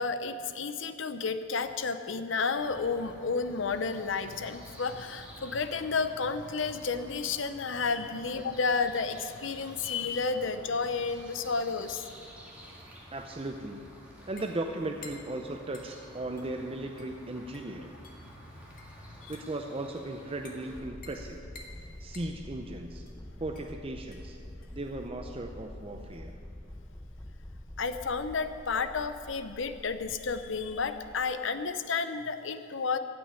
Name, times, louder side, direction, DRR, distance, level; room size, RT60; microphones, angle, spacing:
voice 1, 0.0-12.0 19.2-19.3 21.8-22.0 27.8-33.0, left 4 dB, 65° left, 10 dB, 0.7 m, -31 dB
sound 1, 2.5-20.8, equal, 5° right, 2.2 m, -51 dB
voice 2, 13.1-13.9 14.3-17.9 19.3-21.4 22.0-23.1 23.4-24.4 24.7-26.4, right 2 dB, 25° right, 4 dB, 0.6 m, -37 dB
sound 2, 13.3-26.5, left 4 dB, 45° left, 1.5 m, -55 dB
sound 3, 20.7-31.3, left 1 dB, 15° left, 0.6 m, -47 dB
15.5 x 6.4 x 9.6 m, 2.5 s
head